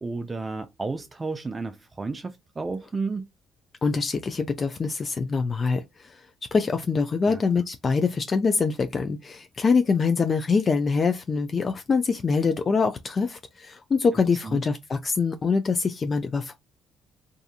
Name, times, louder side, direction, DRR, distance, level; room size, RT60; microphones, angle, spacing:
voice 1, 0.0-3.3 7.3-7.4 14.4-14.6, right 3 dB, 30° right, 0.4 m, -32 dB
voice 2, 3.8-6.2 6.5-16.5, left 4 dB, 40° left, 0.4 m, -24 dB
2.6 x 2.6 x 2.4 m
supercardioid pair, 65°, 0 cm